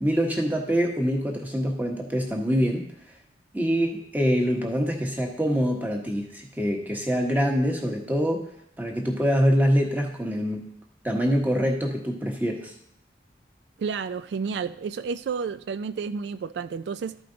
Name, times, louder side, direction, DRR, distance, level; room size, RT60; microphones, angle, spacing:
voice 1, 0.0-2.8 3.5-8.4 8.8-10.7 11.0-12.7, equal, 10° right, 0 dB, 1.2 m, -25 dB
voice 2, 13.8-17.2, right 5 dB, 75° right, 13 dB, 0.3 m, -31 dB
13.0 x 5.1 x 3.9 m, 0.71 s
head